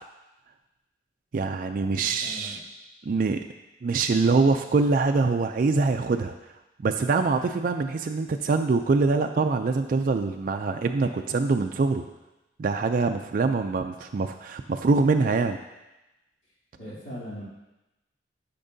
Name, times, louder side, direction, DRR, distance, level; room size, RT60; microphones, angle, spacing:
voice 1, 1.3-2.6 3.1-3.4 3.8-6.3 6.8-12.0 12.6-15.6, right 4 dB, 50° right, 5 dB, 0.4 m, -24 dB
voice 2, 1.9-2.6 16.7-17.4, equal, 75° left, -9 dB, 2.9 m, -40 dB
12.0 x 5.9 x 2.7 m, 1.0 s
head